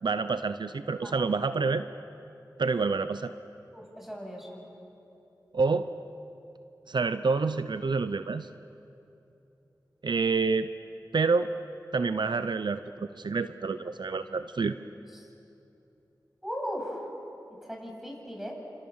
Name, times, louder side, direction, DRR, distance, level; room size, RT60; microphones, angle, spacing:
voice 1, 0.0-1.8 2.6-3.3 5.5-5.9 6.9-8.5 10.0-10.7 11.1-11.5 11.9-14.8, right 4 dB, 70° right, 11 dB, 0.7 m, -28 dB
voice 2, 3.7-4.6 16.4-17.0 17.6-18.6, equal, 5° right, 0 dB, 7.8 m, -37 dB
29.5 x 27.0 x 7.3 m, 2.9 s
cardioid pair, 45°, 8 cm